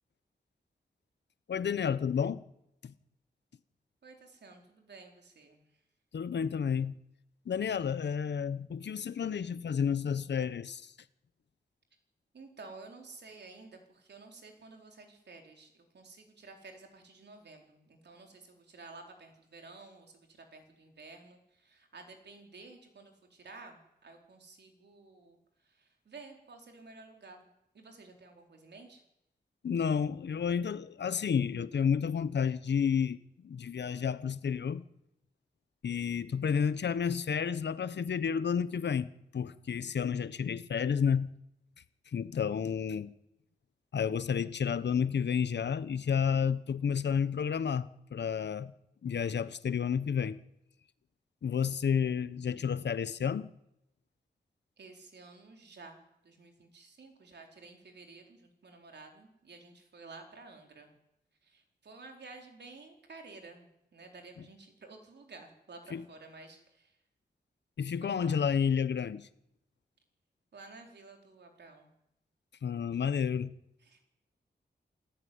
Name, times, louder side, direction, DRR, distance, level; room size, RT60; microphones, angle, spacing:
voice 1, 1.5-2.4 2.8-2.9 6.1-7.0 7.5-10.9 29.6-34.8 35.8-41.3 42.1-43.1 43.9-48.7 49.0-50.4 51.4-53.5 65.9-66.0 67.8-69.3 72.6-73.5, left 7 dB, 80° left, 1.1 m, -31 dB
voice 2, 4.0-5.8 12.3-27.5 27.7-29.0 54.8-60.9 61.4-67.0 68.2-68.4 70.5-71.9 73.8-74.0, right 3 dB, 75° right, 4.4 m, -52 dB
27.0 x 15.0 x 9.6 m
wide cardioid pair, 140°, 18 cm